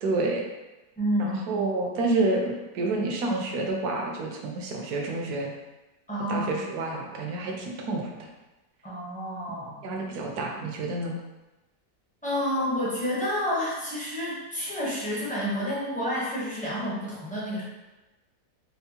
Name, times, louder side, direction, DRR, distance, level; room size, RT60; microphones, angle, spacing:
voice 1, 0.0-0.4 1.2-5.5 6.3-8.1 9.8-11.2, right 2 dB, 75° right, 1 dB, 1.1 m, -28 dB
voice 2, 1.0-1.4 6.1-6.7 8.8-9.8 12.2-17.6, equal, 10° left, -8 dB, 0.5 m, -29 dB
4.3 x 2.0 x 2.8 m, 1.1 s
omnidirectional pair, 1.7 m